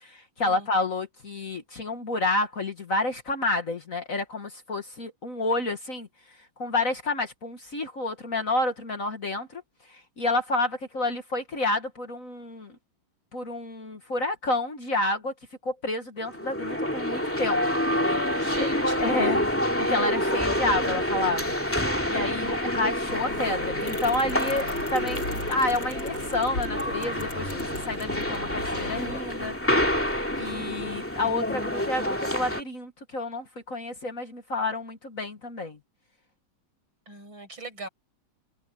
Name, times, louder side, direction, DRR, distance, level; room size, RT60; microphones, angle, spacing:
voice 1, 0.0-6.1 6.6-9.6 10.2-12.8 13.3-15.3 15.6-17.6 18.6-18.7 19.0-19.4 19.8-21.5 22.1-29.6 30.4-35.8, left 2 dB, 40° left, 1.9 m, -29 dB
sound 1, 16.2-32.6, left 1 dB, 5° left, 2.4 m, -28 dB
voice 2, 18.4-19.4 37.1-37.9, right 2 dB, 65° right, 8.7 m, -40 dB
sound 2, 23.1-29.2, left 2 dB, 60° left, 7.2 m, -38 dB
omnidirectional pair, 2.3 m